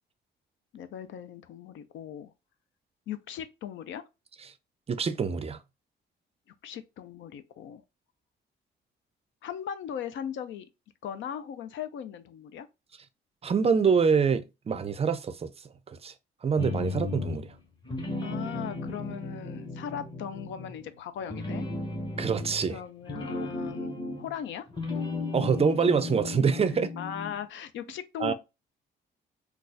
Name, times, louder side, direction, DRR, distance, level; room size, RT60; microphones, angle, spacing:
voice 1, 0.7-2.3 3.1-4.0 6.6-7.8 9.4-10.6 11.0-12.7 18.2-21.7 22.7-24.7 27.0-28.3, left 9 dB, 70° left, 0.5 m, -38 dB
voice 2, 4.9-5.6 13.4-15.5 15.9-16.1 16.4-17.5 22.2-22.8 25.3-26.9 28.2-28.3, right 6 dB, 30° right, 0.4 m, -25 dB
sound 1, 16.6-17.5 17.8-20.9 21.2-24.4 24.7-27.4, left 2 dB, 25° left, 1.0 m, -35 dB
3.9 x 2.3 x 2.5 m
cardioid pair, 90°, 20 cm